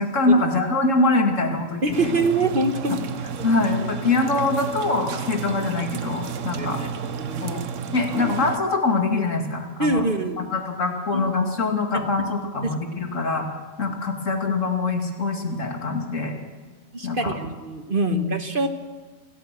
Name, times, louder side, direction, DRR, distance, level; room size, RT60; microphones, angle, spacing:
voice 1, 0.0-2.1 2.9-3.0 3.4-6.8 7.4-7.6 7.9-10.1 10.4-13.5 13.8-16.4 17.0-17.3 18.1-18.4, left 3 dB, 70° left, 3 dB, 2.9 m, -24 dB
voice 2, 1.8-3.0 6.5-7.6 9.8-10.5 11.1-11.2 11.9-12.0 12.6-12.7 16.9-18.7, right 2 dB, 40° right, 7 dB, 1.5 m, -25 dB
sound 1, 1.9-8.6, right 7 dB, 70° right, 1.2 m, -32 dB
27.0 x 14.0 x 7.6 m, 1.4 s
omnidirectional pair, 1.4 m